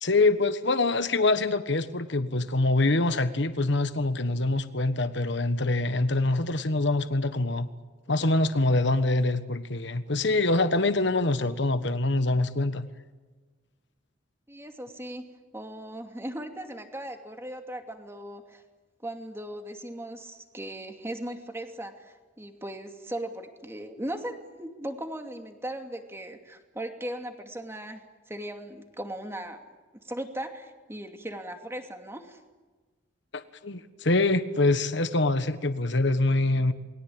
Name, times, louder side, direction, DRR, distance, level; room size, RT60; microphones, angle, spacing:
voice 1, 0.0-7.7 8.1-12.9 33.3-36.7, left 2 dB, 65° left, 11 dB, 1.4 m, -25 dB
voice 2, 14.5-15.3 15.5-18.6 19.0-29.6 30.0-32.4, right 1 dB, 15° right, 5 dB, 2.6 m, -38 dB
28.0 x 22.0 x 8.8 m, 1.3 s
head